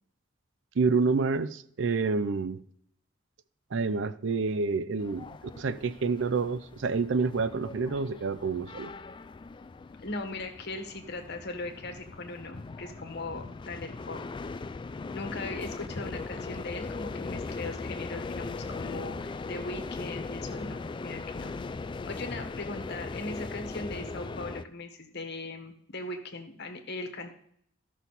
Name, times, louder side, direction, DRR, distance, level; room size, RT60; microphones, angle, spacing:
voice 1, 0.8-2.6 3.7-5.3 5.6-8.9, right 4 dB, 65° right, 0.5 m, -28 dB
sound 1, 5.0-24.6, left 3 dB, 25° left, 0.3 m, -39 dB
voice 2, 10.0-14.2 15.1-21.5 22.1-27.3, left 2 dB, 55° left, 1.5 m, -39 dB
14.0 x 6.3 x 4.1 m
head